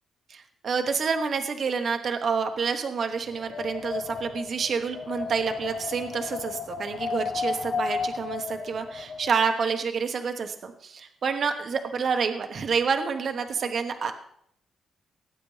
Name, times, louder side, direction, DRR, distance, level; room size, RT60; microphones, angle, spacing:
voice 1, 0.3-14.1, right 5 dB, 50° right, 6 dB, 0.9 m, -28 dB
Wind, 3.3-9.3, left 5 dB, 55° left, 0.7 m, -33 dB
18.0 x 8.9 x 3.2 m, 0.71 s
cardioid pair, 125°, 0 cm